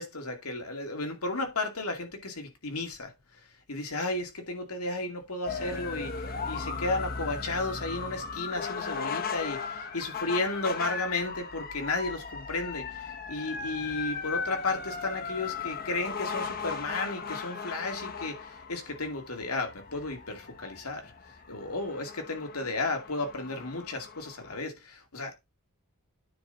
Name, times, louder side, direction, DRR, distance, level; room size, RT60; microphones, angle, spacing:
voice 1, 0.0-3.1 3.7-21.1 21.5-25.5, left 2 dB, 85° left, 2.4 m, -33 dB
sound 1, 5.4-24.6, left 5 dB, 40° left, 1.0 m, -37 dB
9.5 x 4.2 x 5.3 m
head